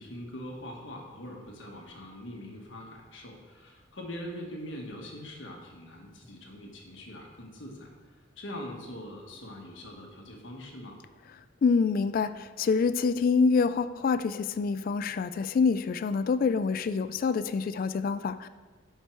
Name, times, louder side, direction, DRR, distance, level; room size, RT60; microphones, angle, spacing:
voice 1, 0.0-11.0, left 1 dB, 70° left, 1 dB, 1.5 m, -43 dB
voice 2, 11.6-18.5, left 5 dB, 45° left, 13 dB, 0.3 m, -26 dB
11.0 x 4.6 x 4.5 m, 1.4 s
head